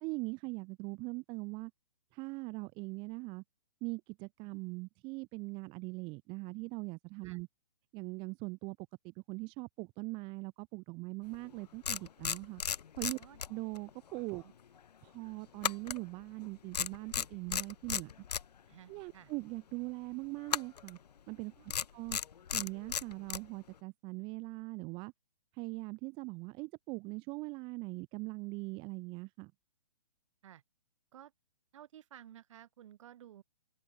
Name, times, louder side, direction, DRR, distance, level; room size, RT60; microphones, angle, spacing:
voice 1, 0.0-1.7 2.1-3.4 3.8-7.5 7.9-12.6 13.0-13.2 13.5-14.4 15.0-18.1 18.9-21.0 21.3-22.2 22.5-25.1 25.5-29.5, right 26 dB, 25° right, 1.2 m, -41 dB
sound 1, 11.3-11.5 11.8-13.9 14.2-14.4 15.6-16.5 16.7-18.5 20.5-21.0 21.7-23.5, left 8 dB, 75° left, 0.4 m, -35 dB
voice 2, 18.7-19.3 21.6-21.7 30.4-30.6 31.1-31.3 31.7-33.4, right 11 dB, 50° right, 6.3 m, -54 dB
figure-of-eight pair, 125°, 21 cm